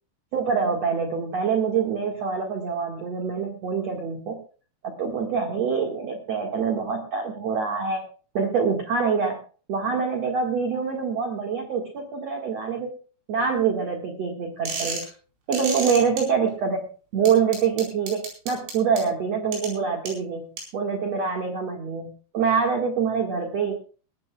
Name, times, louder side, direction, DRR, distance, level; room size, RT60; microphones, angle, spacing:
voice 1, 0.3-4.4 5.0-8.0 8.3-9.4 9.7-12.9 13.3-15.0 15.5-16.9 17.1-20.5 20.7-23.7, right 6 dB, 50° right, 2 dB, 2.1 m, -25 dB
sound 1, 14.7-15.1 15.5-16.2 17.3-19.0 19.5-19.7 20.1-20.2 20.6-20.7, right 4 dB, 85° right, 7.0 m, -30 dB
21.5 x 13.5 x 2.4 m, 0.37 s
omnidirectional pair, 5.4 m